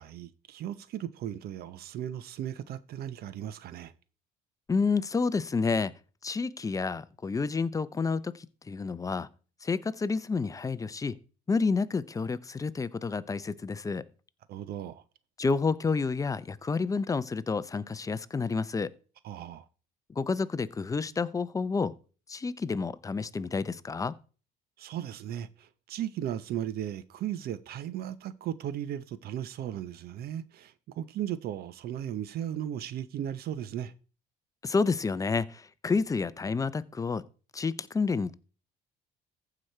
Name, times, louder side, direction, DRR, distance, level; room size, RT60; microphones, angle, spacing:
voice 1, 0.0-3.9 14.5-15.0 19.2-19.7 24.8-33.9, right 11 dB, 65° right, 0.7 m, -36 dB
voice 2, 4.7-5.9 6.2-9.3 9.6-11.2 11.5-14.1 15.4-18.9 20.1-22.0 22.3-24.1 34.6-37.2 37.5-38.3, left 4 dB, 20° left, 0.5 m, -29 dB
14.5 x 5.0 x 4.4 m
cardioid pair, 110°, 17 cm